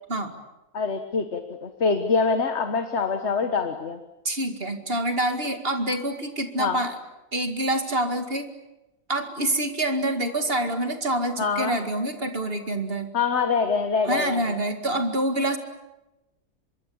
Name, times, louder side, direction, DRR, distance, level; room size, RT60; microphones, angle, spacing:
voice 1, 0.7-4.0 6.6-6.8 11.4-11.8 13.1-14.6, left 5 dB, 50° left, 7 dB, 1.7 m, -25 dB
voice 2, 4.2-7.0 7.3-8.5 9.1-13.1 14.0-15.6, right 1 dB, 40° right, 7 dB, 2.4 m, -26 dB
25.0 x 23.0 x 8.7 m, 0.97 s
omnidirectional pair, 1.5 m